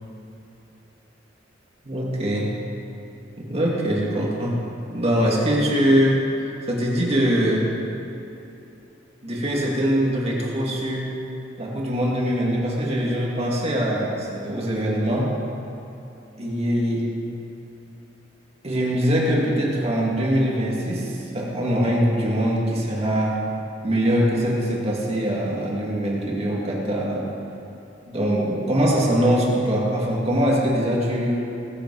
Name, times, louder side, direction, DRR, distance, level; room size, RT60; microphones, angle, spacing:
voice 1, 1.8-2.5 3.4-4.6 4.9-6.3 6.7-7.7 9.2-11.1 11.6-15.3 16.4-17.1 18.6-23.4 23.8-27.3 28.1-31.4, equal, 35° right, -3 dB, 2.3 m, -22 dB
20.5 x 8.9 x 4.8 m, 2.9 s
head